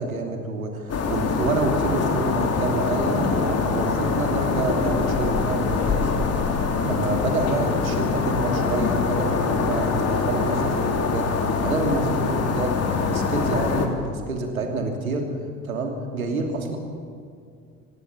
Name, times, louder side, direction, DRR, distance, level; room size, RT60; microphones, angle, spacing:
voice 1, 0.0-6.1 6.8-15.3 15.6-16.8, right 3 dB, 75° right, 3 dB, 3.0 m, -28 dB
sound 1, 0.9-13.9, left 5 dB, 35° left, 3.2 m, -24 dB
24.5 x 20.0 x 7.1 m, 2.4 s
figure-of-eight pair, 60°, 42 cm